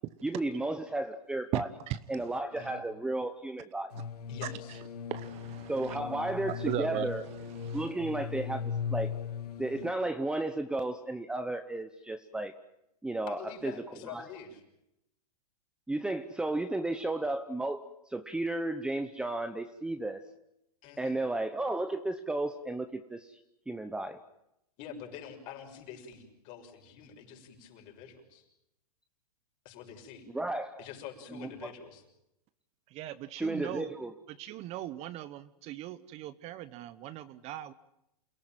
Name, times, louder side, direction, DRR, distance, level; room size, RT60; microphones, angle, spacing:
voice 1, 0.2-1.7 2.1-3.9 5.7-7.2 7.7-9.1 9.6-12.5 13.0-13.7 14.1-14.2 15.9-20.2 21.0-23.4 23.7-24.2 30.3-30.8 31.3-31.7 33.4-34.1, right 2 dB, 5° right, 9 dB, 0.9 m, -33 dB
voice 2, 1.5-2.7 4.4-4.8 5.1-6.0 6.5-7.9 32.9-33.9 34.3-37.7, right 13 dB, 30° right, 14 dB, 1.0 m, -39 dB
sound 1, 3.9-9.9, left 7 dB, 80° left, 3.2 m, -38 dB
voice 3, 4.3-4.8 13.3-14.6 20.8-21.2 24.8-28.5 29.6-30.3 30.8-32.0, left 7 dB, 40° left, 3 dB, 6.5 m, -46 dB
28.5 x 17.5 x 9.1 m, 0.86 s
hypercardioid pair, 130°, 20 cm